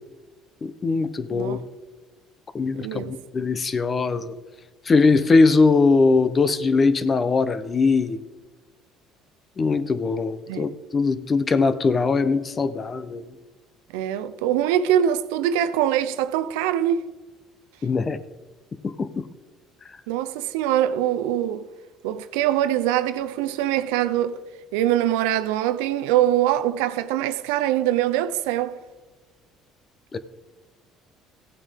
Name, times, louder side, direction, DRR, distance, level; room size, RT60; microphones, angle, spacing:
voice 1, 0.6-1.6 2.5-3.0 3.3-4.4 4.9-8.2 9.6-13.2 17.8-18.2 18.8-19.3 30.1-30.2, left 4 dB, 35° left, 0.8 m, -21 dB
voice 2, 2.7-3.2 10.5-10.6 13.9-17.0 20.1-21.6 22.0-24.4 24.7-28.8, right 11 dB, 85° right, 0.6 m, -23 dB
15.5 x 8.3 x 3.6 m
supercardioid pair, 80°, 0 cm